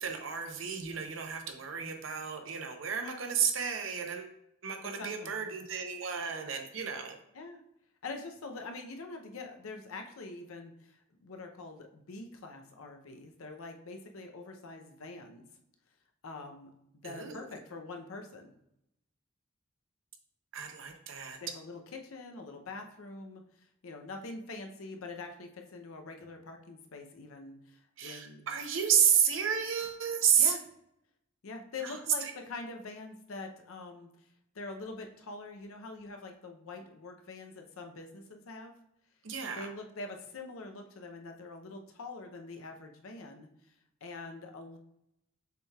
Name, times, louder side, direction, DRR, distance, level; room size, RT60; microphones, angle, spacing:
voice 1, 0.0-4.3 4.6-7.2 17.0-17.4 20.5-21.4 28.0-30.6 31.8-32.3 39.2-39.7, right 7 dB, 70° right, 5 dB, 0.7 m, -31 dB
voice 2, 4.8-5.3 7.3-7.6 8.0-15.5 16.2-16.7 17.0-18.5 21.4-28.5 30.4-30.6 31.4-34.1 34.5-38.7 39.5-43.5 44.0-44.8, left 3 dB, 90° left, 4 dB, 0.6 m, -44 dB
6.7 x 2.3 x 3.2 m, 0.80 s
head